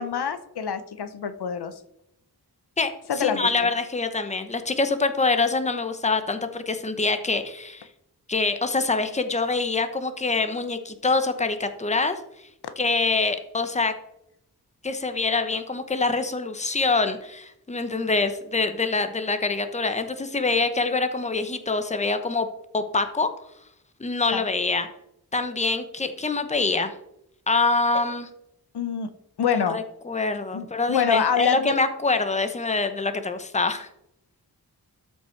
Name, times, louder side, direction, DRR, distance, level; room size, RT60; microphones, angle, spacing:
voice 1, 0.0-1.7 3.1-3.5 12.6-12.7 24.3-24.4 28.7-29.1 29.4-29.8 30.5-31.7, left 7 dB, 80° left, 12 dB, 0.8 m, -26 dB
voice 2, 3.2-7.9 8.3-12.2 12.8-13.9 14.8-22.5 22.7-23.3 24.0-24.9 25.3-26.9 27.5-28.3 29.5-33.9, left 3 dB, 20° left, 9 dB, 0.8 m, -25 dB
13.0 x 5.5 x 4.5 m, 0.81 s
wide cardioid pair, 105°, 39 cm